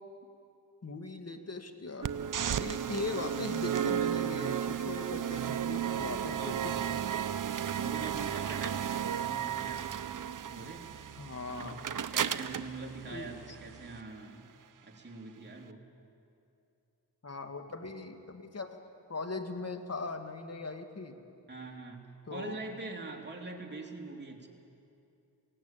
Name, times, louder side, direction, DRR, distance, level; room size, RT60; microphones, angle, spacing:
voice 1, 0.8-2.1 2.6-7.0 11.2-11.8 13.1-13.3 17.2-18.8 19.1-21.2 22.3-22.6, left 3 dB, 35° left, 6 dB, 1.8 m, -39 dB
sound 1, 2.0-14.0, right 9 dB, 50° right, 0.7 m, -34 dB
voice 2, 6.4-7.1 7.5-9.8 10.4-11.3 12.1-14.5 14.8-15.8 21.5-24.5, right 3 dB, 25° right, 1 dB, 2.8 m, -44 dB
17.5 x 17.0 x 8.9 m, 2.6 s
cardioid pair, 60°, 42 cm